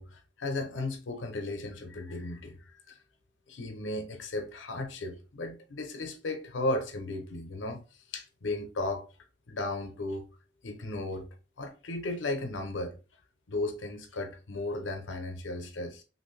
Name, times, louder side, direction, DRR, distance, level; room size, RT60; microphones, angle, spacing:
voice 1, 0.0-2.9 3.5-7.8 8.1-9.0 9.5-10.2 10.6-11.3 11.6-13.0 13.5-16.0, left 2 dB, 75° left, 0.7 m, -35 dB
2.9 x 2.6 x 3.2 m
head